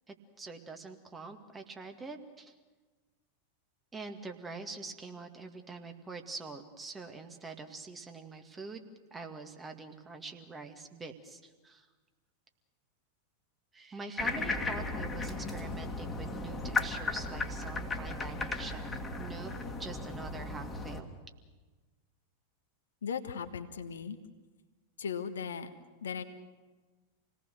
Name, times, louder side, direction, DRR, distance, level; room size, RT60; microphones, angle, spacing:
voice 1, 0.1-2.5 3.9-11.9 13.7-19.5 19.8-21.1, right 3 dB, 15° right, 5 dB, 2.1 m, -45 dB
sound 1, 14.2-21.0, left 3 dB, 15° left, 2.3 m, -36 dB
voice 2, 23.0-24.2 25.0-25.7 26.0-26.2, left 6 dB, 65° left, 9 dB, 1.4 m, -37 dB
27.5 x 18.5 x 6.6 m, 1.3 s
figure-of-eight pair, 90°, 0 cm